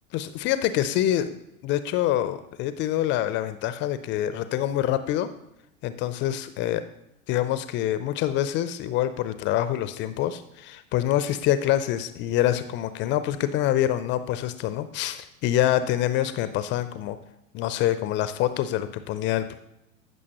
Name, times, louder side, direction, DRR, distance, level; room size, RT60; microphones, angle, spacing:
voice 1, 0.1-1.3 1.6-5.3 5.8-6.8 7.3-17.2 17.5-19.5, left 12 dB, 30° left, 12 dB, 0.4 m, -26 dB
14.0 x 6.1 x 2.9 m, 0.86 s
hypercardioid pair, 95°, 42 cm